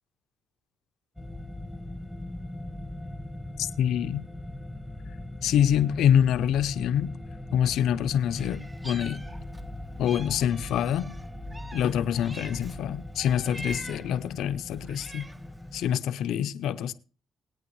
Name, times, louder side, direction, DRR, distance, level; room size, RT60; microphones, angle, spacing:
sound 1, 1.2-15.9, left 1 dB, ahead, 1.2 m, -40 dB
voice 1, 3.6-4.3 5.4-7.1 7.5-9.2 10.0-11.1 11.7-15.3 15.7-16.9, left 9 dB, 80° left, 0.8 m, -26 dB
Meow, 8.3-9.7 10.0-12.8 13.2-14.2 14.7-15.5, right 1 dB, 15° right, 0.9 m, -44 dB
21.0 x 8.9 x 3.3 m
cardioid pair, 90°, 0 cm